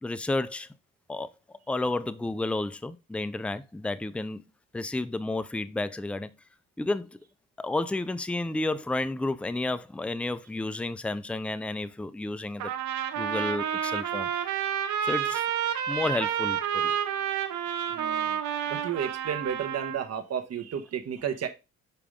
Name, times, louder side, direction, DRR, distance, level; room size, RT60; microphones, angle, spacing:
voice 1, 0.0-0.7 1.1-1.3 1.7-4.5 4.7-6.3 6.8-7.2 7.6-12.7 13.2-14.3 15.0-15.4 15.9-16.9, left 2 dB, 5° left, 0.5 m, -31 dB
Trumpet, 12.6-20.1, right 9 dB, 70° right, 1.1 m, -30 dB
voice 2, 17.9-18.4 18.7-21.5, right 8 dB, 55° right, 1.4 m, -32 dB
6.9 x 4.9 x 3.7 m
cardioid pair, 90°, 30 cm